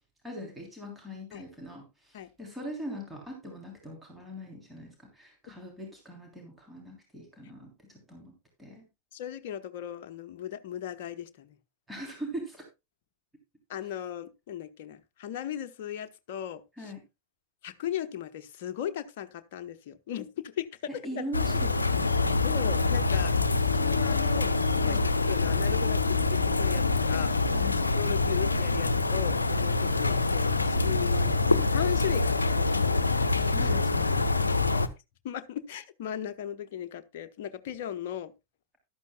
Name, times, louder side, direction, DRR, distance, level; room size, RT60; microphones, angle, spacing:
voice 1, 0.2-8.3 8.6-8.9 11.9-12.7 16.8-17.0 20.9-22.4 24.8-25.0 27.5-27.8 33.5-34.4, equal, 5° right, 3.3 m, -41 dB
voice 2, 9.1-11.6 13.7-16.9 17.6-20.8 21.2-21.3 22.4-23.3 23.7-25.0 25.3-27.5 28.0-33.5 35.2-38.3, left 10 dB, 50° left, 0.9 m, -37 dB
sound 1, 21.3-34.9, left 3 dB, 80° left, 0.8 m, -25 dB
14.0 x 12.0 x 2.3 m
figure-of-eight pair, 90°, 0 cm